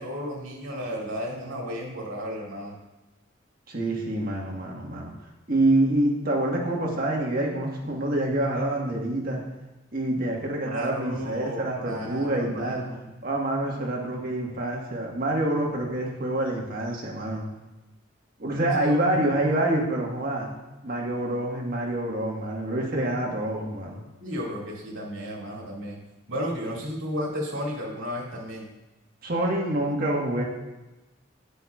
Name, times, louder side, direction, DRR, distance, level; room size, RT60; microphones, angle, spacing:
voice 1, 0.0-2.8 10.7-13.1 18.9-19.2 24.2-26.0 26.3-28.7, equal, 90° right, -2 dB, 2.3 m, -33 dB
voice 2, 3.7-5.1 5.5-9.4 9.9-12.8 13.2-17.4 18.4-20.5 20.8-24.0 29.2-30.4, right 1 dB, 50° right, -1 dB, 1.4 m, -26 dB
10.0 x 8.1 x 2.4 m, 1.1 s
head